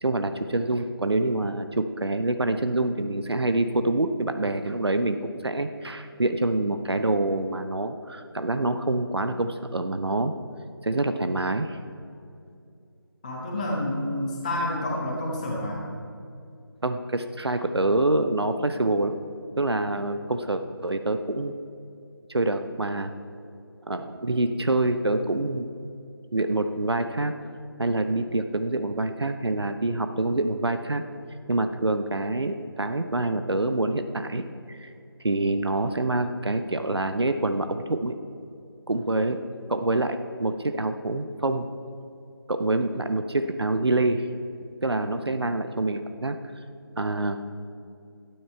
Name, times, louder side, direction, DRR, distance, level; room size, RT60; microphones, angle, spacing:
voice 1, 0.0-10.3 10.8-11.8 16.8-19.1 19.6-21.5 22.3-23.1 23.9-25.7 26.3-27.3 27.8-31.0 31.5-34.9 35.2-38.1 38.9-39.4 39.7-41.7 42.5-44.3 44.8-46.4 47.0-47.5, right 2 dB, 85° right, 8 dB, 0.7 m, -26 dB
voice 2, 13.2-15.8, left 1 dB, 20° left, -4 dB, 1.4 m, -29 dB
12.5 x 8.8 x 4.4 m, 2.5 s
figure-of-eight pair, 165°, 13 cm